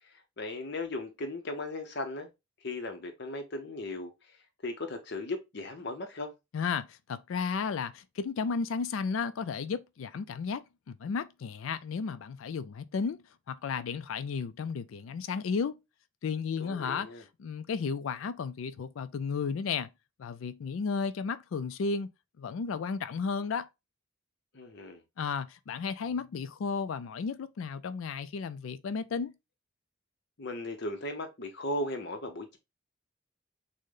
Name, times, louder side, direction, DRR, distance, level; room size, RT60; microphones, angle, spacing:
voice 1, 0.0-2.3 2.6-4.4 4.6-6.3 16.6-17.2 24.5-25.0 30.4-32.6, left 2 dB, 55° left, 0.7 m, -37 dB
voice 2, 6.5-13.2 13.5-15.8 16.2-17.1 17.4-19.9 20.2-22.1 22.4-23.7 25.2-29.3, left 5 dB, 85° left, 0.4 m, -33 dB
6.3 x 2.1 x 3.7 m
head